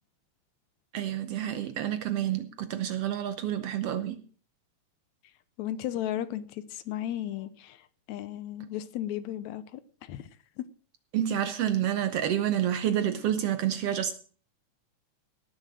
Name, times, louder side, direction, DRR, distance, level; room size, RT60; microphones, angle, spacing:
voice 1, 0.9-4.2 11.1-14.1, right 10 dB, 70° right, 1.6 m, -29 dB
voice 2, 5.6-10.3 10.6-10.7, left 12 dB, 75° left, 2.0 m, -35 dB
18.0 x 6.6 x 6.3 m
omnidirectional pair, 3.4 m